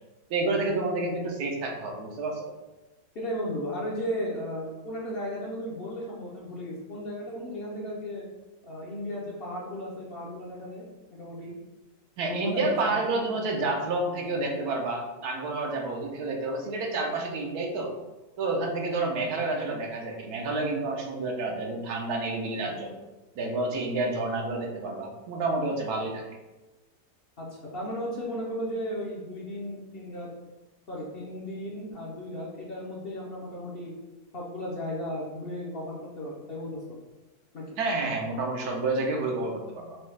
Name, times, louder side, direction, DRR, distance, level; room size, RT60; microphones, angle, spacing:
voice 1, 0.3-2.5 12.2-17.9 18.4-22.9 23.4-26.2 37.8-40.0, right 2 dB, 75° right, 0 dB, 1.3 m, -29 dB
voice 2, 3.1-8.2 8.6-10.8 11.1-11.5 12.2-13.0 27.4-30.3 30.9-33.9 34.3-36.8 37.5-37.6, equal, 45° left, -4 dB, 0.9 m, -35 dB
6.1 x 2.4 x 3.2 m, 1.1 s
omnidirectional pair, 1.6 m